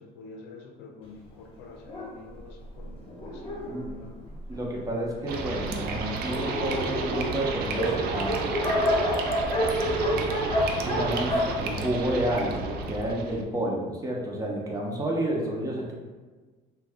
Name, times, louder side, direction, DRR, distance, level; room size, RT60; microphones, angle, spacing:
voice 1, 0.0-3.0 3.3-4.2, left 3 dB, 85° left, 2 dB, 0.5 m, -47 dB
Dog, 1.8-4.8 5.5-5.6 5.9-6.0 6.2-12.6, equal, 35° left, 0.8 m, -29 dB
voice 2, 4.5-8.5 10.8-15.9, right 1 dB, 20° right, -2 dB, 0.6 m, -30 dB
sound 1, 5.3-13.4, right 4 dB, 65° right, 0.4 m, -32 dB
2.6 x 2.2 x 3.4 m, 1.4 s
cardioid pair, 110°, 17 cm